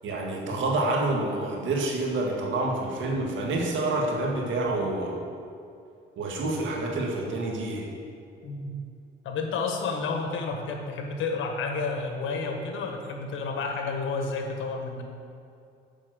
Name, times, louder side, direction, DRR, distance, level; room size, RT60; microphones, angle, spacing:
voice 1, 0.0-5.2 6.2-7.9, right 2 dB, 75° right, 0 dB, 1.8 m, -28 dB
voice 2, 8.4-8.8 9.2-15.0, left 4 dB, 80° left, 3 dB, 1.4 m, -31 dB
7.4 x 6.1 x 7.9 m, 2.5 s
cardioid pair, 90°, 20 cm